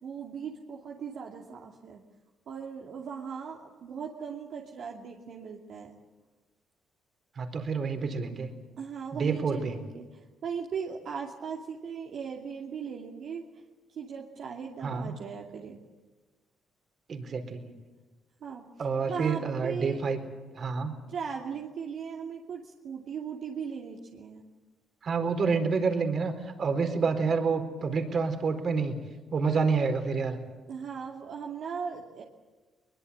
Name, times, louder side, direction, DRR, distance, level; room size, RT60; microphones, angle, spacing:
voice 1, 0.0-2.0 2.5-6.0 8.8-13.5 13.9-15.8 18.4-18.6 19.0-20.0 21.1-24.5 30.7-32.2, right 6 dB, 65° right, -1 dB, 2.6 m, -38 dB
voice 2, 7.4-8.5 9.1-9.8 14.8-15.1 17.1-17.7 18.8-20.2 20.5-20.9 25.0-29.0 29.3-30.4, right 5 dB, 50° right, 7 dB, 4.3 m, -28 dB
23.0 x 21.5 x 8.8 m, 1.3 s
cardioid pair, 90°, 0 cm